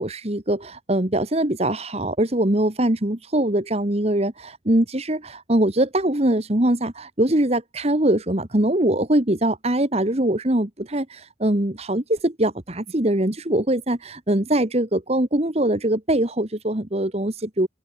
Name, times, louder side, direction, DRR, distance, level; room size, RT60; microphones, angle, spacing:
voice 1, 0.0-17.7, right 1 dB, 35° right, 1.8 m, -22 dB
head